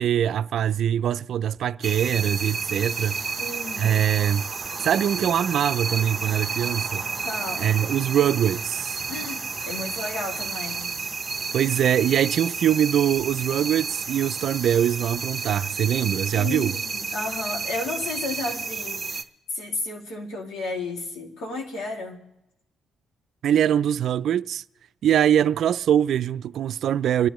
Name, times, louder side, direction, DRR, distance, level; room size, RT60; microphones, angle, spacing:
voice 1, 0.0-3.2 3.8-4.4 4.8-7.0 7.6-9.0 11.5-16.7 23.4-24.6 25.0-27.3, right 10 dB, 70° right, 0.4 m, -23 dB
sound 1, 1.8-19.2, right 4 dB, 30° right, 0.8 m, -31 dB
voice 2, 3.4-4.1 7.2-7.8 9.1-10.9 16.4-19.2 19.5-22.2, left 2 dB, 85° left, 2.4 m, -33 dB
29.5 x 10.0 x 3.1 m
cardioid pair, 90°, 0 cm